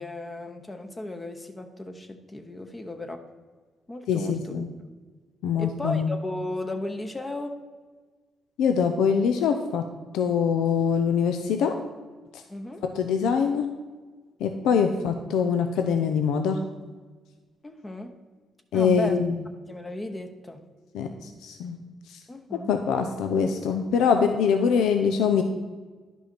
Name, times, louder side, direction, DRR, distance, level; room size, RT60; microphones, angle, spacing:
voice 1, 0.0-3.2 3.9-4.5 5.6-7.6 12.5-12.8 17.6-18.2 18.7-19.2 19.7-20.6 22.3-22.7, left 1 dB, 20° left, 5 dB, 0.8 m, -35 dB
voice 2, 4.1-4.7 5.4-6.1 8.6-9.8 10.1-11.8 12.9-13.7 14.4-16.6 18.7-19.4 20.9-21.1 21.4-21.8 22.1-22.2 22.7-25.4, left 6 dB, 85° left, 6 dB, 0.6 m, -23 dB
10.5 x 5.5 x 4.3 m, 1.4 s
cardioid pair, 90°, 0 cm